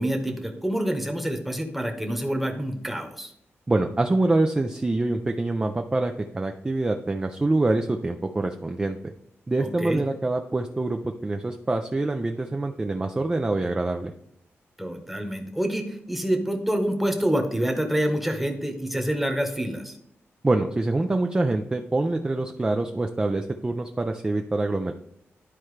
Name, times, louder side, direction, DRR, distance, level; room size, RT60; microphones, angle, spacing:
voice 1, 0.0-3.3 9.6-10.0 14.8-20.0, right 1 dB, 5° right, 4 dB, 1.1 m, -27 dB
voice 2, 3.7-9.1 9.5-14.1 20.4-24.9, right 2 dB, 20° right, 5 dB, 0.4 m, -25 dB
11.5 x 4.4 x 3.2 m, 0.74 s
wide cardioid pair, 120°, 5 cm